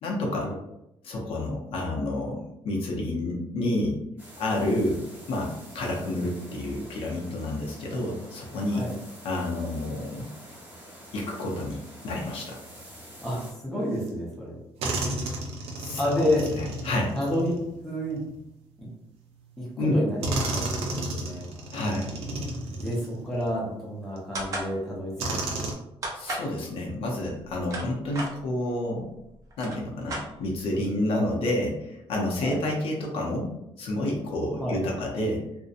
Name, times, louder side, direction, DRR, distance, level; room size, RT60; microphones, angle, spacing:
voice 1, 0.0-0.5 1.0-4.0 4.4-8.9 9.2-10.3 11.1-11.8 12.0-12.6 15.8-17.1 19.8-20.0 21.7-22.1 26.1-29.1 29.6-33.5 33.8-35.4, left 1 dB, 70° left, -1 dB, 0.6 m, -29 dB
sound 1, 4.2-13.5, equal, 15° right, 1.0 m, -47 dB
voice 2, 13.2-14.5 16.0-16.4 17.1-17.6 17.8-18.2 18.8-18.9 19.8-20.4 20.7-21.4 22.8-25.4 32.4-32.6 34.6-34.8, left 1 dB, 5° left, -6 dB, 0.7 m, -29 dB
sound 2, 14.1-14.2 14.8-18.4 19.4-19.5 20.2-23.6 24.2-24.3 25.2-25.7, right 1 dB, 90° right, 0.5 m, -32 dB
sound 3, 24.3-24.7 26.0-26.5 27.4-28.3 29.1-29.2 29.5-30.7, right 1 dB, 30° right, 0.5 m, -34 dB
2.6 x 2.1 x 2.4 m, 0.86 s
cardioid pair, 180°, 10 cm